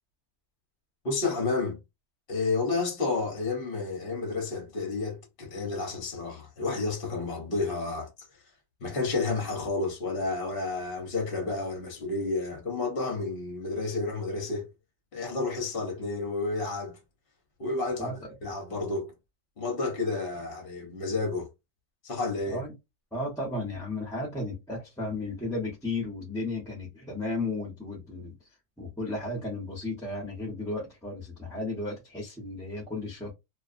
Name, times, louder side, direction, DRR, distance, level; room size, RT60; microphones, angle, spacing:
voice 1, 1.0-1.8 2.3-8.1 8.8-14.7 15.1-17.0 17.6-19.1 19.6-21.5 22.0-22.6, left 3 dB, 45° left, 0.8 m, -31 dB
voice 2, 23.1-28.4 28.8-33.3, left 2 dB, 5° left, 0.6 m, -34 dB
2.5 x 2.3 x 2.5 m
omnidirectional pair, 1.6 m